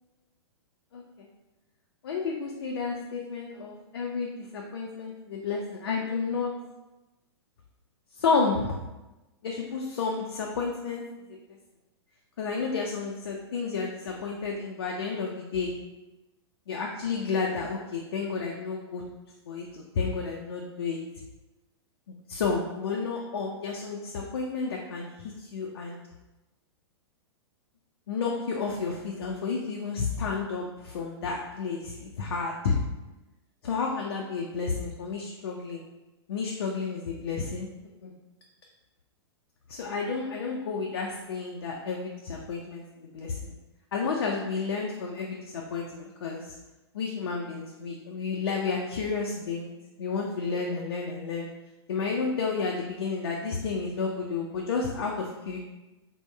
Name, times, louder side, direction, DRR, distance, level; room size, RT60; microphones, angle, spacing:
voice 1, 0.9-1.3 2.0-6.5 8.1-8.8 9.4-11.0 12.4-15.7 16.7-19.0 19.5-21.0 22.3-26.0 28.1-32.8 33.6-35.8 36.3-37.7 38.0-38.1 39.7-43.6 43.9-46.5 46.9-49.7 50.0-51.5 51.9-55.6, left 4 dB, 55° left, -1 dB, 0.5 m, -31 dB
3.6 x 2.1 x 3.3 m, 1.0 s
figure-of-eight pair, 105°, 14 cm